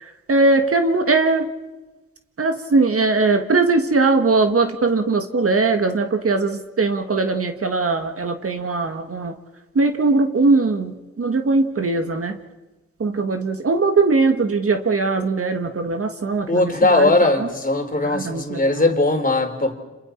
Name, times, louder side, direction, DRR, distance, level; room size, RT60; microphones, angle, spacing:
voice 1, 0.0-1.5 2.4-9.3 9.7-12.4 13.0-17.5 18.0-18.9, right 3 dB, 45° right, 6 dB, 1.7 m, -20 dB
voice 2, 16.5-19.7, left 2 dB, 25° left, 4 dB, 3.5 m, -19 dB
30.0 x 27.0 x 4.5 m, 1.1 s
cardioid pair, 70°, 31 cm